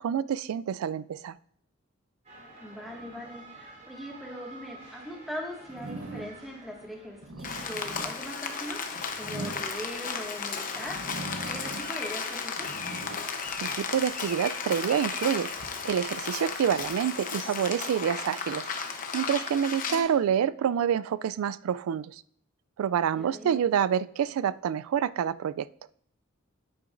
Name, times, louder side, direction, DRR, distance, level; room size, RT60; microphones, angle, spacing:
voice 1, 0.0-1.4 13.6-15.5 15.8-18.7 19.1-22.2 22.8-25.7, right 8 dB, 85° right, 17 dB, 0.3 m, -27 dB
sound 1, 2.2-7.3, right 2 dB, 35° right, 3.1 m, -49 dB
voice 2, 2.6-8.8 9.2-11.0 11.4-12.7 19.9-20.1 23.2-23.6, equal, ahead, -2 dB, 1.8 m, -40 dB
sound 2, 5.7-6.6 7.1-10.3 10.8-12.1 12.4-14.3 14.9-17.0, right 2 dB, 65° right, 0.8 m, -42 dB
Rain, 7.4-20.0, left 5 dB, 40° left, 0.8 m, -34 dB
9.6 x 8.7 x 2.5 m, 0.64 s
head